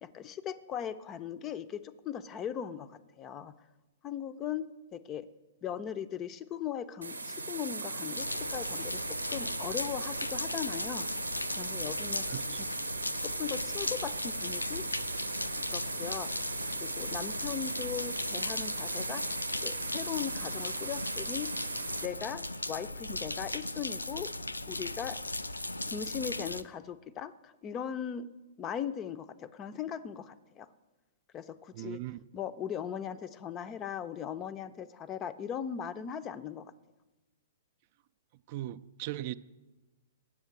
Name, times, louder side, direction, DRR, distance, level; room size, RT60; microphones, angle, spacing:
voice 1, 0.0-3.5 4.0-5.3 5.6-11.1 11.6-12.3 12.6-12.7 13.2-14.9 15.7-19.2 19.6-21.5 22.0-24.3 24.7-25.2 25.9-28.3 28.6-30.7 31.3-32.0 32.3-36.7, left 8 dB, 25° left, 0.4 m, -39 dB
sound 1, 7.0-22.1, right 3 dB, 80° right, 0.7 m, -38 dB
sound 2, 8.1-26.6, left 2 dB, 85° left, 0.4 m, -37 dB
voice 2, 12.0-12.7 31.8-32.2 38.5-39.3, right 15 dB, 40° right, 0.3 m, -39 dB
8.6 x 7.2 x 7.8 m
figure-of-eight pair, 110°, 0 cm